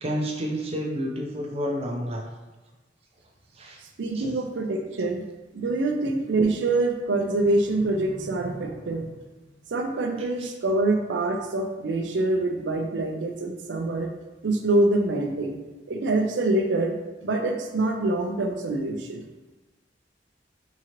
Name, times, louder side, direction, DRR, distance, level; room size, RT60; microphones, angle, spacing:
voice 1, 0.0-2.2 3.6-3.8 4.2-4.3, equal, 35° right, 1 dB, 0.5 m, -29 dB
voice 2, 4.0-5.2 5.5-9.1 9.7-14.1 14.4-15.6 15.9-16.9 17.2-19.2, right 2 dB, 85° right, 4 dB, 0.5 m, -25 dB
3.7 x 2.9 x 2.9 m, 1.2 s
head